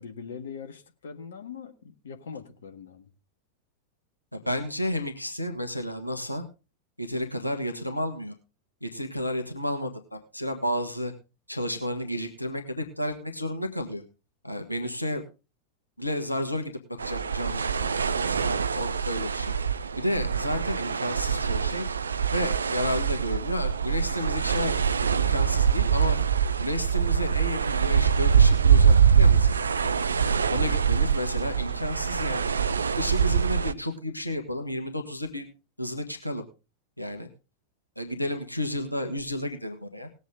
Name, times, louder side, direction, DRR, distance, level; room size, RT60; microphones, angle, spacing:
voice 1, 0.0-3.1 30.7-31.0, left 6 dB, 65° left, 1.7 m, -42 dB
voice 2, 4.3-6.4 7.0-8.3 8.8-11.1 11.5-14.0 14.4-15.2 16.0-16.7 17.0-19.5 20.0-21.9 22.3-24.8 25.1-26.2 26.6-29.9 30.5-32.5 32.9-35.5 35.8-36.4 37.0-37.3 37.9-40.1, left 1 dB, 90° left, 1.5 m, -31 dB
sound 1, 17.0-33.7, right 7 dB, 75° right, 0.5 m, -24 dB
19.0 x 8.2 x 3.8 m
figure-of-eight pair, 90°, 0 cm